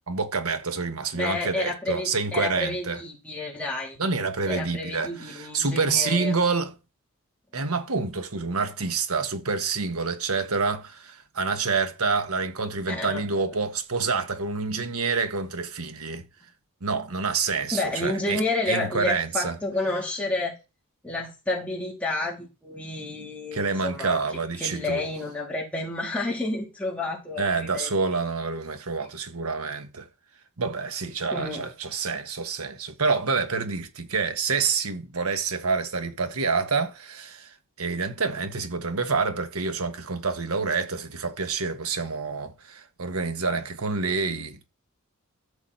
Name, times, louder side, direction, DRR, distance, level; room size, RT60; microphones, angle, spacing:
voice 1, 0.1-3.0 4.0-6.7 7.5-16.2 16.8-18.4 18.7-19.6 23.5-25.1 27.4-30.1 30.6-44.7, right 4 dB, 75° right, 1.4 m, -27 dB
voice 2, 1.1-4.0 4.5-6.4 12.9-13.5 17.7-20.5 21.0-24.2 24.6-27.9 31.3-31.7, left 2 dB, 5° left, 3.3 m, -30 dB
13.0 x 7.2 x 4.2 m
head